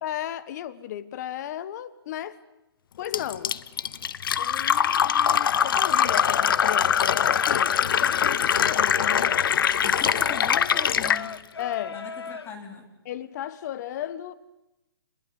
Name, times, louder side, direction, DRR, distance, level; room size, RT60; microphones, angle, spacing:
voice 1, 0.0-2.4 3.0-3.5 4.4-9.6 11.6-12.0 13.0-14.3, left 11 dB, 45° left, 1.5 m, -35 dB
Fill (with liquid), 3.1-11.2, left 8 dB, 60° left, 0.9 m, -22 dB
Singing, 5.2-12.5, left 5 dB, 80° left, 1.3 m, -40 dB
voice 2, 9.8-11.4 11.9-12.9, left 5 dB, 20° left, 4.2 m, -39 dB
27.5 x 21.0 x 9.6 m
hypercardioid pair, 140°, 13 cm